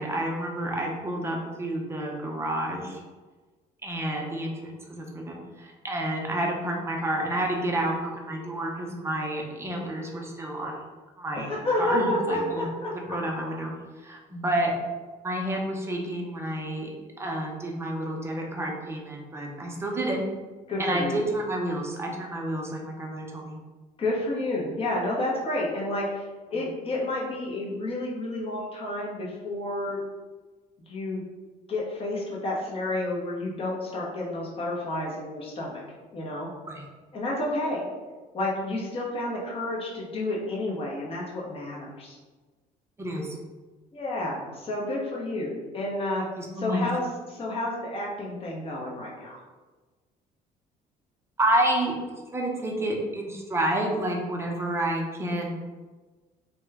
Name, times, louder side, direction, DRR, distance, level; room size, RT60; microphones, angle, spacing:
voice 1, 0.0-3.0 3.8-10.8 11.2-11.5 11.8-12.7 12.9-13.7 14.0-14.7 15.2-16.9 17.2-20.2 20.8-23.6 36.7-36.8 43.0-43.3 46.4-46.9 51.4-52.0 52.3-55.7, right 1 dB, 15° right, -1 dB, 0.6 m, -29 dB
voice 2, 11.3-13.2 20.7-21.2 24.0-30.0 30.9-31.2 31.7-35.8 36.1-36.5 37.1-37.9 38.3-42.2 43.9-46.2 46.5-49.4, left 1 dB, 35° left, -4 dB, 0.9 m, -30 dB
2.9 x 2.1 x 3.4 m, 1.3 s
cardioid pair, 110°, 17 cm